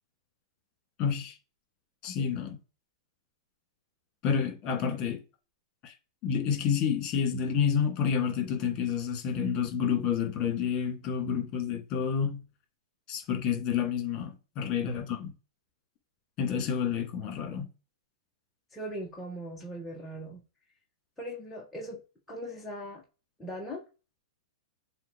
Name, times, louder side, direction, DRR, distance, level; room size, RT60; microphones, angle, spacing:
voice 1, 1.0-1.4 2.0-2.6 4.2-5.2 5.8-5.9 6.2-12.4 13.1-15.3 16.4-17.7, left 7 dB, 35° left, 2.6 m, -29 dB
voice 2, 18.7-20.4 21.2-22.0 22.3-23.0 23.4-23.8, equal, 5° left, 1.6 m, -39 dB
7.4 x 2.7 x 4.7 m
figure-of-eight pair, 105°, 2 cm